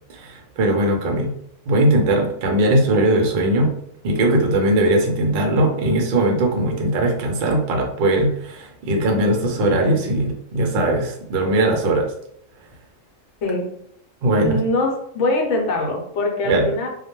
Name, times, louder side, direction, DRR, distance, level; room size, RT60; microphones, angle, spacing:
voice 1, 0.1-1.3 1.7-3.7 4.0-12.1 14.2-14.6 16.5-16.7, right 1 dB, 60° right, 2 dB, 0.6 m, -19 dB
voice 2, 14.4-16.9, left 2 dB, 65° left, 1 dB, 0.9 m, -22 dB
2.3 x 2.1 x 2.9 m, 0.70 s
omnidirectional pair, 1.4 m